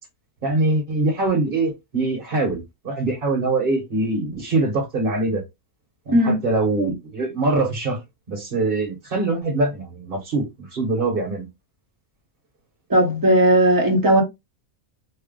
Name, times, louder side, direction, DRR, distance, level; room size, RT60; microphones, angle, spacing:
voice 1, 0.4-5.4 6.1-8.0 8.3-11.5, right 2 dB, 40° right, 1.1 m, -23 dB
voice 2, 12.9-14.2, right 1 dB, 20° right, 0.8 m, -16 dB
3.4 x 2.2 x 3.6 m
omnidirectional pair, 1.5 m